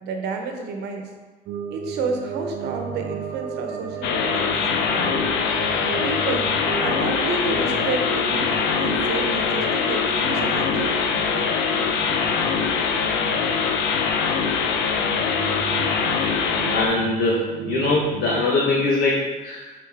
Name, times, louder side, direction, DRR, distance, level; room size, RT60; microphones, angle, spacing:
voice 1, 0.0-1.1 1.7-5.1 6.0-6.5 6.8-11.5, right 3 dB, 80° right, 3 dB, 1.0 m, -30 dB
sound 1, 1.5-18.4, right 6 dB, 60° right, 0.5 m, -34 dB
sound 2, 4.0-16.9, left 6 dB, 90° left, 0.6 m, -23 dB
voice 2, 16.7-19.7, left 2 dB, 65° left, -4 dB, 1.1 m, -22 dB
6.9 x 4.3 x 3.5 m, 1.3 s
cardioid pair, 110°, 17 cm